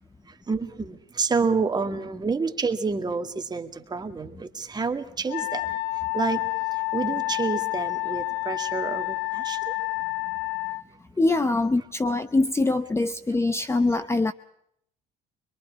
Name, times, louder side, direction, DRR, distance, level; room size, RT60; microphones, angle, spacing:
voice 1, 0.3-5.8 6.1-6.4 6.9-9.7, right 4 dB, 25° right, 6 dB, 2.0 m, -28 dB
Wind instrument woodwind instrument, 5.3-10.8, left 21 dB, 75° left, 1.0 m, -29 dB
voice 2, 11.2-14.3, left 2 dB, 15° left, 13 dB, 0.8 m, -23 dB
25.0 x 22.5 x 4.7 m, 0.70 s
cardioid pair, 110°, 17 cm